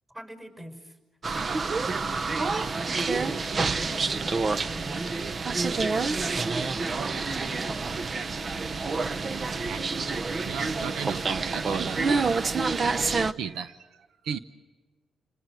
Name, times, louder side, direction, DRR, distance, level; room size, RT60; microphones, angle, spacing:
voice 1, 0.1-1.0 1.2-5.3 6.2-8.0 9.0-9.9, right 1 dB, 20° right, 7 dB, 5.4 m, -44 dB
sound 1, 1.2-13.3, right 4 dB, 40° right, 0.8 m, -28 dB
voice 2, 9.5-10.1 10.4-12.3 13.4-13.9 14.2-14.4, right 7 dB, 85° right, 11 dB, 0.8 m, -36 dB
28.5 x 21.0 x 7.8 m, 1.3 s
cardioid pair, 80°, 0 cm